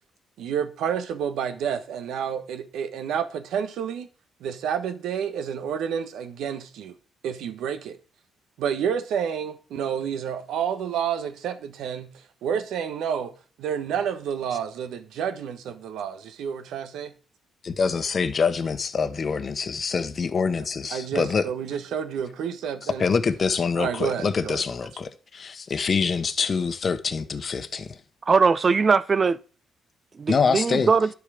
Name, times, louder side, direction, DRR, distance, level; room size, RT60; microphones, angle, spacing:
voice 1, 0.4-4.1 4.4-6.9 7.2-8.0 8.6-12.1 12.4-13.3 13.6-17.1 20.9-23.1 23.8-24.6, right 8 dB, 80° right, 1.4 m, -29 dB
voice 2, 17.6-21.5 22.8-28.0 30.3-30.9, left 5 dB, 40° left, 1.1 m, -25 dB
voice 3, 28.3-29.4 30.2-31.1, right 5 dB, 35° right, 0.6 m, -20 dB
11.0 x 6.9 x 5.1 m
cardioid pair, 90°, 0 cm